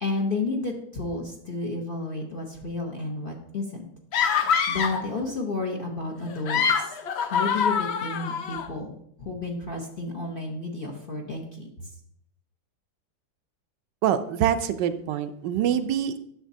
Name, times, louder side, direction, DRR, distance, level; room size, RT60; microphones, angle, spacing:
voice 1, 0.0-3.8 4.7-7.0 7.2-11.7, left 3 dB, 45° left, 0 dB, 0.8 m, -31 dB
sound 1, 4.1-5.1 6.3-8.7, left 7 dB, 80° left, 0.5 m, -25 dB
voice 2, 14.0-16.2, right 9 dB, 80° right, 9 dB, 1.2 m, -25 dB
10.0 x 6.9 x 2.7 m, 0.71 s
omnidirectional pair, 1.9 m